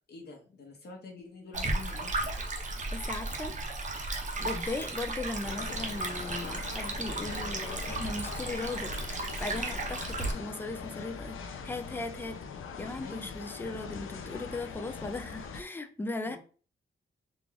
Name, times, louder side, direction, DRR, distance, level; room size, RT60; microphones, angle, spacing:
voice 1, 0.1-2.4 13.0-13.4 16.3-16.4, left 3 dB, 50° left, 1.0 m, -47 dB
Stream, 1.5-10.3, right 2 dB, 35° right, 0.7 m, -35 dB
voice 2, 2.9-3.6 4.4-8.9 9.4-12.4 12.8-16.4, left 2 dB, 10° left, 0.3 m, -38 dB
sound 1, 5.4-15.6, left 6 dB, 75° left, 0.5 m, -42 dB
3.7 x 2.4 x 3.2 m
wide cardioid pair, 160°, 21 cm